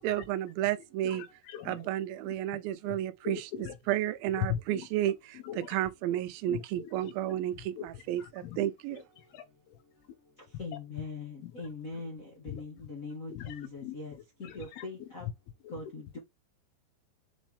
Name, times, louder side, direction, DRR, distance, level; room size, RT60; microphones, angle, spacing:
voice 1, 0.0-1.2 1.7-3.4 3.9-5.4 5.7-7.7 8.1-9.0, right 12 dB, 80° right, 2.4 m, -31 dB
voice 2, 1.0-1.9 2.7-3.0 3.2-3.8 4.3-5.8 6.1-6.2 6.5-8.6 8.9-9.8 10.5-10.6 11.4-11.6 11.9-12.0 12.5-12.6 13.3-13.9 14.4-14.9 15.2-15.3 15.6-15.8, left 11 dB, 80° left, 2.9 m, -41 dB
voice 3, 10.6-14.1 14.4-15.3 15.7-16.2, left 3 dB, 65° left, 0.8 m, -41 dB
6.3 x 4.6 x 3.5 m
omnidirectional pair, 4.4 m